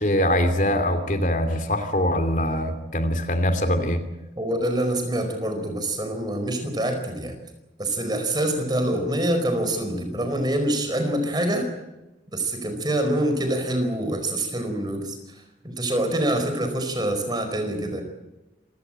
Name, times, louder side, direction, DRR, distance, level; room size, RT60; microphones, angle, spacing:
voice 1, 0.0-4.0, left 1 dB, 45° left, 8 dB, 2.7 m, -23 dB
voice 2, 4.4-7.3 7.8-11.7 12.3-18.0, right 1 dB, 25° right, 6 dB, 4.8 m, -25 dB
27.5 x 17.0 x 8.9 m, 1.0 s
head